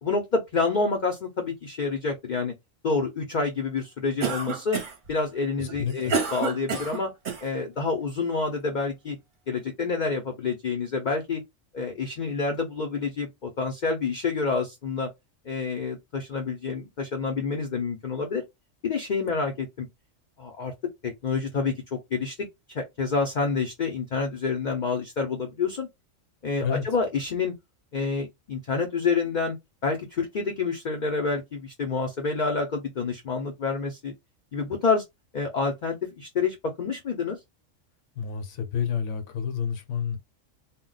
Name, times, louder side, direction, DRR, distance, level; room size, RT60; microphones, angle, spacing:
voice 1, 0.0-2.5 2.8-4.8 5.1-7.1 7.4-9.2 9.5-11.4 11.7-15.1 15.5-18.4 18.8-19.9 20.4-20.7 21.0-22.3 22.7-25.9 26.4-27.5 27.9-29.6 29.8-34.1 34.5-35.0 35.3-37.4, left 4 dB, 50° left, 0.6 m, -28 dB
Cough, 4.2-5.1 5.7-7.5, right 5 dB, 45° right, 0.8 m, -29 dB
voice 2, 5.6-6.1 26.6-26.8 38.2-40.2, left 7 dB, 70° left, 1.0 m, -29 dB
2.2 x 2.1 x 3.8 m
omnidirectional pair, 1.3 m